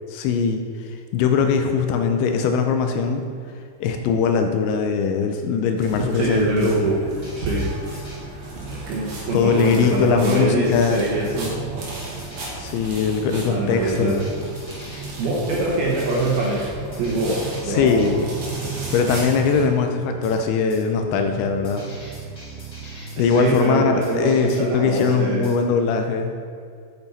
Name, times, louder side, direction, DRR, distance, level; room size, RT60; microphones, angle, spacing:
voice 1, 0.1-3.2 3.8-7.0 9.3-11.1 12.6-14.2 17.7-18.3 18.9-21.9 23.2-26.3, left 5 dB, 80° left, 5 dB, 2.8 m, -21 dB
sound 1, 5.8-19.6, right 2 dB, 55° right, 1.9 m, -34 dB
voice 2, 6.0-6.9 7.3-7.7 8.7-11.5 13.4-14.2 15.2-16.6 17.0-18.1 23.2-25.5, right 2 dB, 75° right, -4 dB, 2.4 m, -24 dB
sound 2, 7.2-8.2 9.3-9.5 10.3-10.4 11.2-11.4 12.2-12.8 14.1-15.2 15.5-15.6 16.0-18.1 19.3-19.4 20.2-20.4 20.7-20.8 21.6-23.7 24.0-24.6 24.9-25.1 25.4-25.6, left 1 dB, 35° left, 1.2 m, -45 dB
sound 3, 11.3-24.3, right 8 dB, 90° right, 2.4 m, -40 dB
8.8 x 8.0 x 4.1 m, 2.2 s
omnidirectional pair, 5.5 m